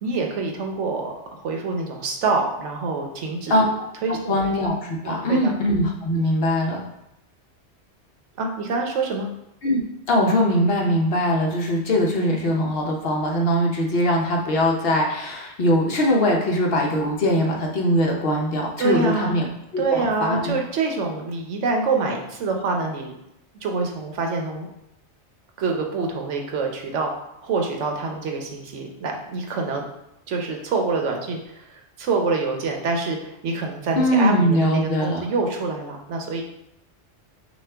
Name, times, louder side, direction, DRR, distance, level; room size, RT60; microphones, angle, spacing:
voice 1, 0.0-1.1 1.4-3.7 4.0-4.4 5.0-5.5 8.4-9.3 18.8-19.4 19.8-23.1 23.5-24.7 25.6-29.8 30.3-36.4, right 4 dB, 85° right, 2 dB, 1.1 m, -26 dB
voice 2, 4.3-6.8 9.6-9.8 10.1-19.5 19.7-20.5 34.0-35.2, equal, 60° left, 0 dB, 0.9 m, -21 dB
6.1 x 2.4 x 3.4 m, 0.84 s
omnidirectional pair, 1.2 m